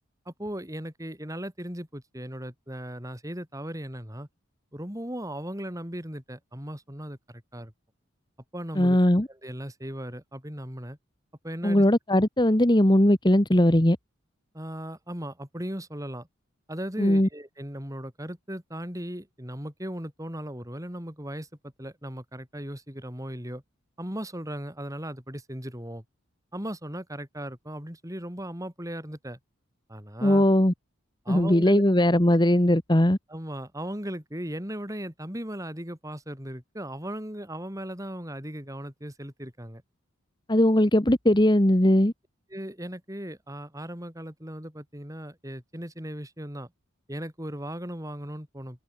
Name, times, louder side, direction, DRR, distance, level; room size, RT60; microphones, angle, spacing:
voice 1, 0.2-4.3 4.7-7.7 8.5-9.0 9.3-11.0 11.4-11.8 14.5-16.3 16.7-23.6 24.0-26.0 26.5-29.4 29.9-30.4 31.2-31.8 33.3-39.8 42.5-46.7 47.1-48.8, equal, 15° right, 5.1 m, -37 dB
voice 2, 8.8-9.3 11.6-14.0 17.0-17.3 30.2-30.7 31.3-33.2 40.5-42.1, left 1 dB, 20° left, 1.5 m, -20 dB
open air
head